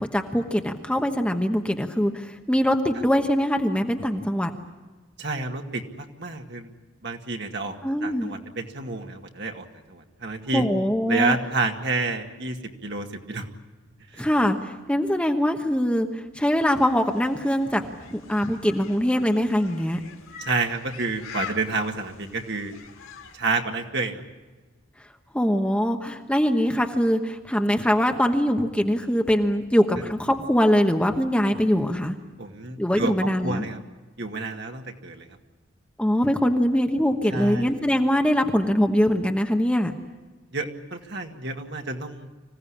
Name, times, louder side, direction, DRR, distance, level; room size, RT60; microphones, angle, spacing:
voice 1, 0.0-4.5 7.8-8.3 10.5-11.4 14.2-20.0 25.3-32.2 32.8-33.7 36.0-39.9, equal, 5° left, 4 dB, 1.1 m, -23 dB
voice 2, 5.2-6.7 7.0-7.8 8.0-10.7 11.1-13.5 14.1-14.3 20.4-22.8 23.3-24.2 32.4-33.1 33.4-33.8 34.2-35.3 37.3-37.7 40.5-42.3, right 3 dB, 55° right, 4 dB, 2.0 m, -29 dB
sound 1, 16.5-23.4, left 6 dB, 90° left, 3.0 m, -43 dB
25.5 x 16.5 x 10.0 m, 1.2 s
head